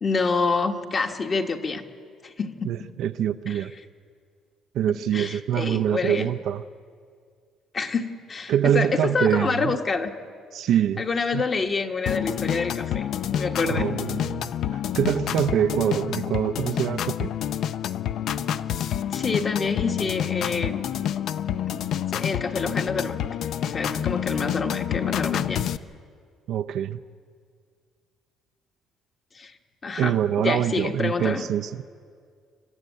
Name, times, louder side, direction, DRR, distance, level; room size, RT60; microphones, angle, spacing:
voice 1, 0.0-1.8 2.2-2.9 3.5-3.6 4.9-6.3 7.7-10.1 11.0-13.9 19.1-20.8 21.7-23.3 23.6-25.7 29.3-29.5 29.8-31.4, left 4 dB, 35° left, 5 dB, 1.4 m, -27 dB
voice 2, 2.6-3.7 4.7-6.6 8.5-9.8 10.5-11.0 11.3-11.5 13.7-17.3 26.5-27.0 30.0-31.8, right 10 dB, 70° right, 6 dB, 0.5 m, -25 dB
sound 1, 12.1-25.8, left 10 dB, 60° left, 0.5 m, -28 dB
27.5 x 12.5 x 9.4 m, 2.1 s
cardioid pair, 125°, 0 cm